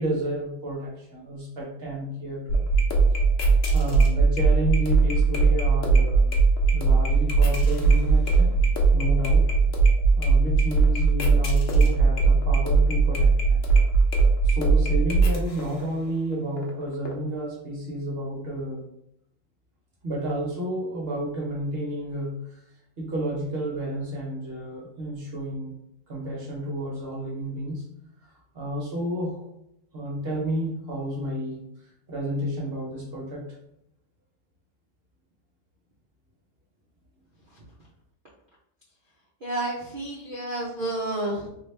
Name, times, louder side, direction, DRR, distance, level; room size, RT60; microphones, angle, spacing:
voice 1, 0.0-2.7 3.7-6.3 6.7-8.5 8.9-9.5 10.2-13.6 14.4-18.9 20.0-22.6 23.0-25.7 26.1-27.8 28.2-29.5 29.9-31.6 32.1-33.4, right 1 dB, 50° right, -3 dB, 0.8 m, -31 dB
sound 1, 2.5-15.8 16.3-16.7 17.1-17.2, right 4 dB, 60° left, 1.0 m, -20 dB
voice 2, 39.4-41.5, right 2 dB, 65° right, -6 dB, 0.5 m, -30 dB
3.1 x 2.8 x 3.2 m, 0.78 s
omnidirectional pair, 1.7 m